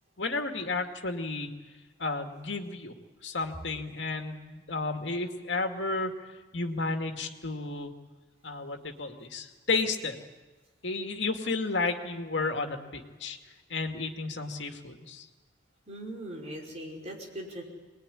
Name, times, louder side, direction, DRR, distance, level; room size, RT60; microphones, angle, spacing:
voice 1, 0.2-1.5 2.0-2.9 3.2-6.1 6.5-7.9 8.4-10.2 10.8-13.4 13.7-15.3, left 3 dB, 75° left, 4 dB, 2.3 m, -32 dB
voice 2, 15.9-17.6, right 1 dB, 35° right, -1 dB, 5.3 m, -40 dB
24.0 x 20.5 x 9.9 m, 1.3 s
head